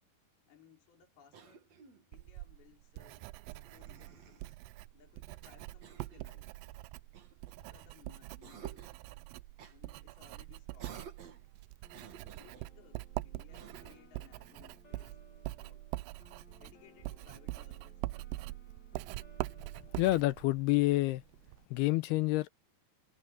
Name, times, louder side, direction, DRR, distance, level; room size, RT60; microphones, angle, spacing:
voice 1, 0.5-1.7 2.1-4.5 4.9-6.5 7.7-8.8 9.7-11.0 12.3-15.2 15.6-15.9 16.6-18.0, left 9 dB, 65° left, 5.6 m, -62 dB
Cough, 1.3-2.1 3.4-4.6 5.8-6.3 7.1-8.0 8.4-9.0 9.6-9.8 10.8-11.5 11.9-12.7 13.5-14.1, right 7 dB, 50° right, 2.8 m, -53 dB
Writing, 2.1-21.7, right 19 dB, 85° right, 2.6 m, -44 dB
sound 1, 11.8-20.5, left 2 dB, 30° left, 2.9 m, -62 dB
voice 2, 19.9-21.2 21.7-22.5, left 18 dB, 85° left, 2.6 m, -28 dB
omnidirectional pair, 4.7 m